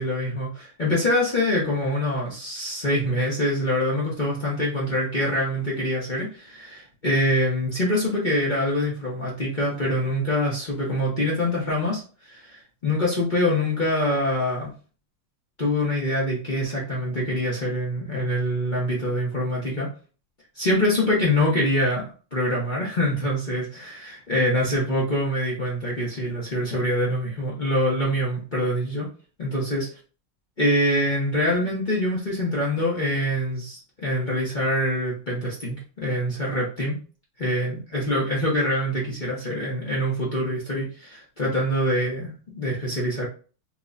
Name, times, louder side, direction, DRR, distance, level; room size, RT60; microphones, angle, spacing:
voice 1, 0.0-12.0 12.3-14.7 15.6-19.9 20.6-29.1 29.4-29.9 30.6-37.0 37.4-43.3, left 1 dB, 40° left, -6 dB, 0.6 m, -25 dB
4.6 x 2.2 x 2.5 m, 0.37 s
omnidirectional pair, 2.4 m